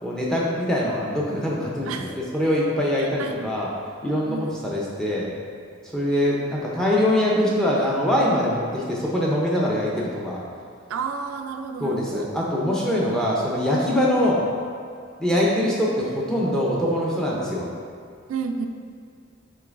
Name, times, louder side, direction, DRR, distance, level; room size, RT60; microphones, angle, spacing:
voice 1, 0.0-3.7 4.0-5.3 5.9-10.4 11.8-14.4 15.2-17.7, left 1 dB, 5° left, -5 dB, 0.6 m, -23 dB
voice 2, 3.0-3.6 4.2-4.7 10.9-12.3 18.3-18.7, right 5 dB, 80° right, 5 dB, 0.3 m, -31 dB
6.6 x 3.1 x 2.5 m, 2.2 s
head